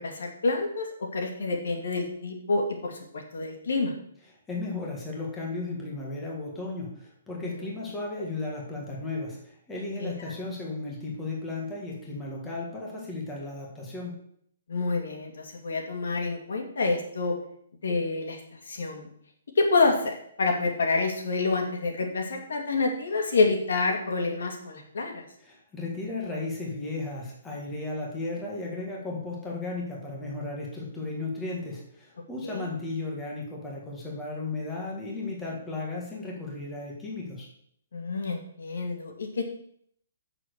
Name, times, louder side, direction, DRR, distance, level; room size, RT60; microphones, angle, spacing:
voice 1, 0.0-4.0 7.4-7.7 10.0-10.3 14.7-17.4 17.8-18.4 18.7-19.1 19.6-25.2 32.4-32.6 37.9-39.4, left 3 dB, 75° left, 2 dB, 2.4 m, -28 dB
voice 2, 4.5-14.2 25.4-37.5, left 2 dB, 10° left, -3 dB, 1.8 m, -35 dB
7.5 x 6.7 x 6.4 m, 0.66 s
hypercardioid pair, 170°, 0 cm